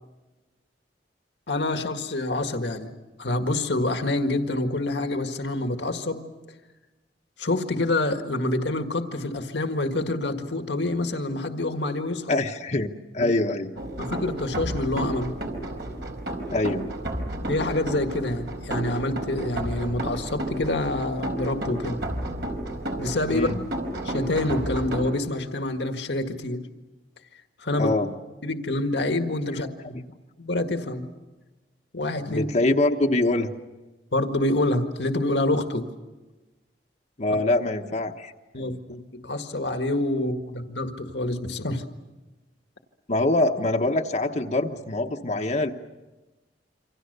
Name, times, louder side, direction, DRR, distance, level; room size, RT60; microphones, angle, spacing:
voice 1, 1.5-2.9 3.2-6.2 7.4-12.4 13.2-13.3 14.0-15.3 17.5-22.0 23.0-23.5 24.1-26.6 27.6-27.9 28.4-30.0 30.4-31.1 31.9-32.5 34.1-35.9 38.5-41.8, left 2 dB, 75° left, 6 dB, 1.9 m, -27 dB
voice 2, 12.3-13.7 16.5-16.9 23.3-23.6 27.7-28.1 32.3-33.5 37.2-38.3 38.6-38.8 43.1-45.7, left 2 dB, 40° left, 3 dB, 1.2 m, -24 dB
sound 1, 13.8-25.1, right 1 dB, 70° right, 4.5 m, -32 dB
28.0 x 25.5 x 6.8 m, 1.2 s
head